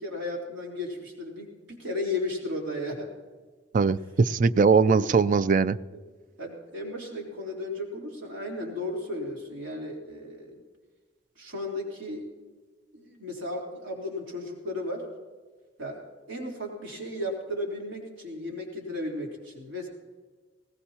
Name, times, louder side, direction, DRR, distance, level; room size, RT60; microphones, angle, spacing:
voice 1, 0.0-3.1 4.9-5.1 5.9-6.0 6.4-10.6 11.4-12.2 12.9-15.1 15.8-19.9, left 1 dB, 90° right, -2 dB, 3.7 m, -35 dB
voice 2, 3.7-5.8, right 5 dB, 45° right, 15 dB, 0.4 m, -21 dB
20.5 x 18.0 x 2.9 m, 1.4 s
head